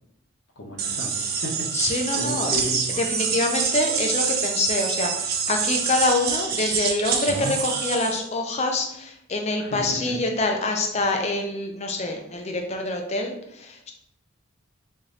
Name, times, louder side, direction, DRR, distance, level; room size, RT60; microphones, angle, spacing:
voice 1, 0.6-2.8 3.3-3.4 9.6-10.1, left 1 dB, 60° left, 0 dB, 0.9 m, -34 dB
sound 1, 0.8-8.2, right 6 dB, 45° right, 0.4 m, -26 dB
voice 2, 1.7-2.5 3.0-13.9, left 2 dB, 30° left, 3 dB, 0.5 m, -26 dB
3.2 x 2.6 x 3.7 m, 0.77 s
head